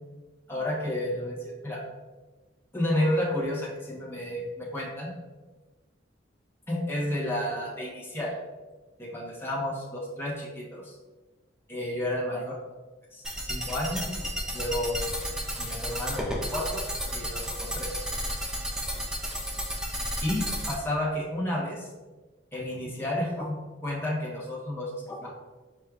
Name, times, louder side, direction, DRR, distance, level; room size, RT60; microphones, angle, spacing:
voice 1, 0.5-1.8 2.7-5.1 6.7-8.3 9.0-10.9 11.7-12.6 13.1-14.3 14.5-15.1 15.6-16.9 17.1-18.0 20.2-21.9 22.5-25.3, left 1 dB, 15° left, -5 dB, 1.0 m, -31 dB
sound 1, 13.2-20.7, equal, 5° right, 0.4 m, -32 dB
4.7 x 4.1 x 2.4 m, 1.2 s
head